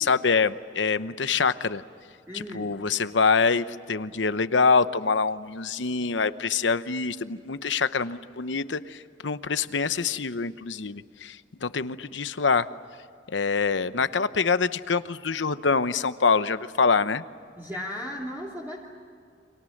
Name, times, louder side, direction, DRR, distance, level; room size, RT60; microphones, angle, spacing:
voice 1, 0.0-1.8 2.3-12.7 13.3-17.2, left 5 dB, 90° left, 13 dB, 0.9 m, -25 dB
voice 2, 2.3-2.7 17.6-18.9, equal, 10° right, -4 dB, 3.0 m, -36 dB
29.5 x 26.0 x 6.5 m, 2.3 s
head